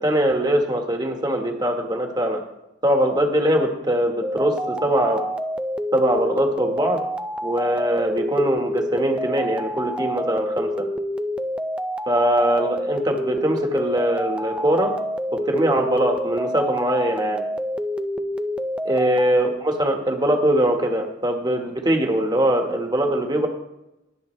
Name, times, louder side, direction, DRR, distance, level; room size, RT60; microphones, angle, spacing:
voice 1, 0.0-2.4 2.8-5.2 5.9-7.0 7.4-10.9 12.1-14.9 15.4-17.4 18.8-23.5, right 1 dB, 20° right, 3 dB, 1.4 m, -22 dB
sound 1, 4.2-19.3, equal, 5° right, 0.5 m, -28 dB
21.0 x 7.2 x 3.2 m, 0.93 s
head